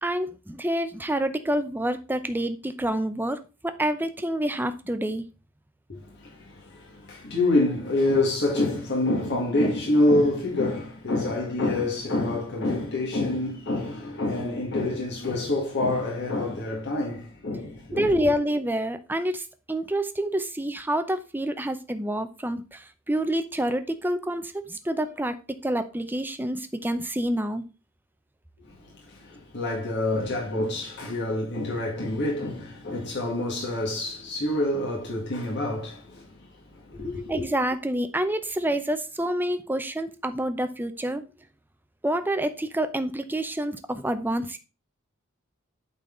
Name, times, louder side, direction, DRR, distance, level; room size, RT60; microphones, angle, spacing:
voice 1, 0.0-5.2 17.9-25.4 25.6-27.6 37.3-41.2 42.0-44.6, right 1 dB, 10° right, 0.6 m, -28 dB
voice 2, 5.9-18.3 28.7-36.3 36.9-37.3, left 2 dB, 55° left, 2.0 m, -27 dB
8.6 x 4.1 x 3.8 m
head